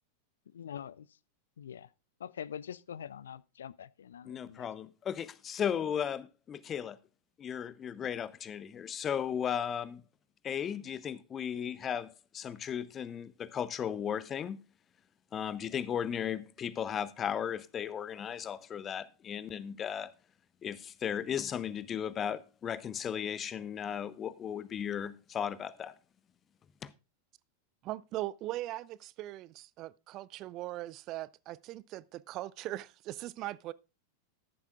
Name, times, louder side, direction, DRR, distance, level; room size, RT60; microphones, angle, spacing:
voice 1, 0.5-1.0 1.6-1.9 2.2-4.7, left 8 dB, 65° left, 0.4 m, -44 dB
voice 2, 4.2-7.0 7.4-10.0 10.4-14.6 15.3-20.1 20.6-25.9 26.8-26.9, left 8 dB, 25° left, 0.6 m, -36 dB
voice 3, 27.8-33.7, right 15 dB, 35° right, 0.4 m, -40 dB
13.5 x 10.5 x 2.4 m
figure-of-eight pair, 90°, 0 cm